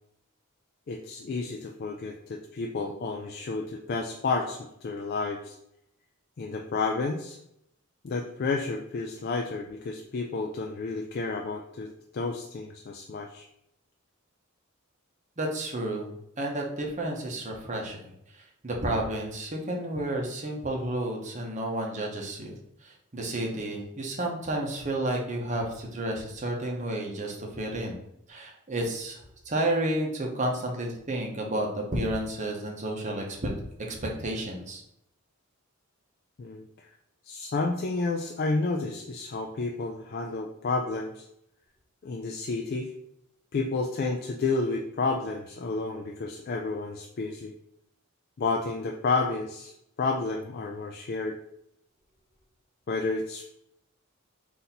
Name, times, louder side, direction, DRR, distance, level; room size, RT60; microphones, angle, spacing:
voice 1, 0.9-5.6 6.4-7.4 8.0-13.5 36.4-36.9 37.3-41.3 42.0-42.9 43.5-47.5 48.4-51.4 52.9-53.5, left 3 dB, 45° left, 2 dB, 0.3 m, -31 dB
voice 2, 15.4-16.1 16.4-18.0 18.3-22.6 22.8-28.0 28.3-29.2 29.5-33.5 33.9-34.8, right 1 dB, 35° right, 0 dB, 0.8 m, -31 dB
4.1 x 2.6 x 4.1 m, 0.78 s
head